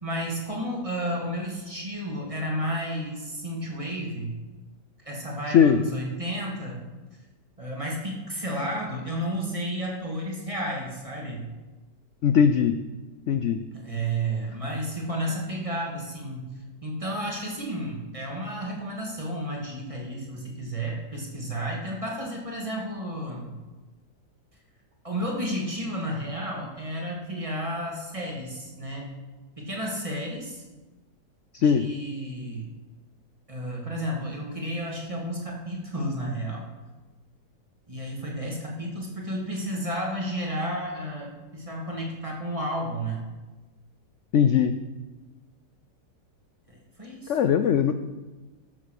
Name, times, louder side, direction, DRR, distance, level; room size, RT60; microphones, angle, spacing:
voice 1, 0.0-4.3 5.0-6.8 7.6-11.5 13.7-16.5 16.8-23.5 25.0-29.1 29.6-30.6 31.6-32.7 33.5-36.6 37.9-43.2 46.7-47.4, right 1 dB, 20° right, -2 dB, 2.3 m, -32 dB
voice 2, 12.2-12.8 13.3-13.6 31.5-31.9 44.3-44.8 47.3-47.9, left 8 dB, 90° left, 10 dB, 0.6 m, -20 dB
12.5 x 7.4 x 6.5 m, 1.2 s
omnidirectional pair, 1.9 m